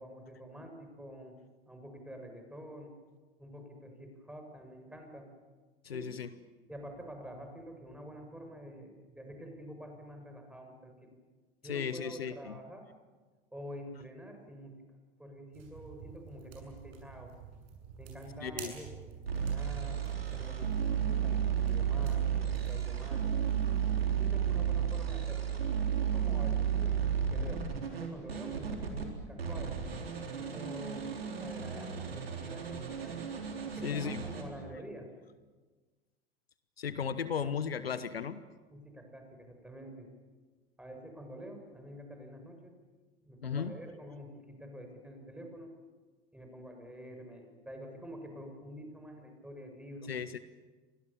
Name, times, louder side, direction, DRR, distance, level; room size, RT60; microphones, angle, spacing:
voice 1, 0.0-1.4 1.7-2.9 3.4-5.3 5.9-6.1 6.7-10.9 11.6-12.9 13.5-14.8 15.2-17.3 18.0-23.3 24.1-25.7 26.1-29.8 30.3-33.3 33.8-35.1 38.7-40.1 40.8-42.7 43.2-45.7 46.3-50.1, equal, 5° right, 4 dB, 6.9 m, -47 dB
voice 2, 5.8-6.3 11.6-12.5 18.4-18.7 33.8-34.2 36.8-38.4 43.4-43.7 50.1-50.4, left 7 dB, 80° left, 14 dB, 1.1 m, -35 dB
sound 1, 15.5-24.3, right 7 dB, 50° right, 7.3 m, -49 dB
sound 2, 19.3-29.1 29.4-34.4, right 8 dB, 75° right, 4.0 m, -33 dB
30.0 x 24.5 x 7.2 m, 1.3 s
figure-of-eight pair, 75°, 30 cm